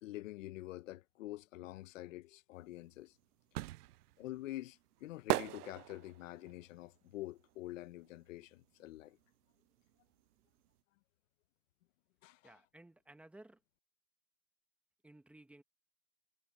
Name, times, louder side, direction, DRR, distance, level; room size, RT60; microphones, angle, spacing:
voice 1, 0.0-3.2 4.2-9.2 12.2-12.5, left 16 dB, 60° left, 1.0 m, -47 dB
sound 1, 2.7-8.5 8.8-10.4 10.7-10.8, right 16 dB, 85° right, 0.5 m, -40 dB
voice 2, 12.4-13.6 15.0-15.6, right 1 dB, 5° right, 1.3 m, -57 dB
hypercardioid pair, 145°, 45 cm